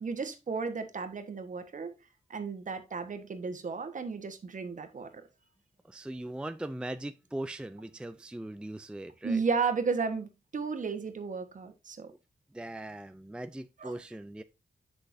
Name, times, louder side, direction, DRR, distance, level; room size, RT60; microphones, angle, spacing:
voice 1, 0.0-1.9 2.3-5.1 9.2-12.1 13.8-13.9, right 5 dB, 50° right, 1.3 m, -33 dB
voice 2, 5.8-9.4 12.5-14.4, right 1 dB, 5° right, 0.4 m, -40 dB
7.5 x 6.5 x 2.6 m
cardioid pair, 85°, 16 cm